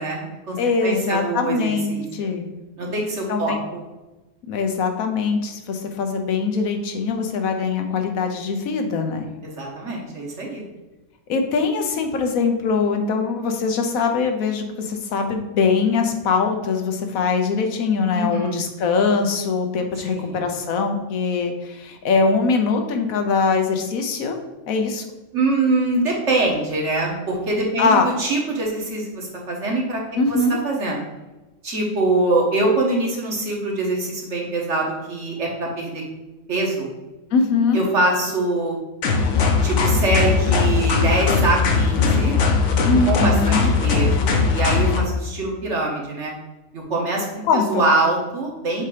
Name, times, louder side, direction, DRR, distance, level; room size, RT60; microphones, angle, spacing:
voice 1, 0.0-2.3 2.8-3.8 9.4-10.6 18.1-18.6 20.0-20.4 25.3-30.0 30.3-30.4 30.6-31.0 31.6-36.0 36.5-36.9 37.7-38.8 39.6-42.4 43.1-46.3 46.7-48.8, right 2 dB, 60° right, -1 dB, 1.6 m, -24 dB
voice 2, 0.6-2.5 3.3-3.6 4.5-9.3 11.3-24.3 24.7-25.0 27.8-28.1 30.2-30.6 37.3-37.8 42.8-43.7 47.5-47.9, left 4 dB, 90° left, 5 dB, 1.2 m, -22 dB
sound 1, 39.0-45.0, left 5 dB, 65° left, 1.1 m, -19 dB
7.2 x 2.8 x 4.9 m, 1.1 s
omnidirectional pair, 1.4 m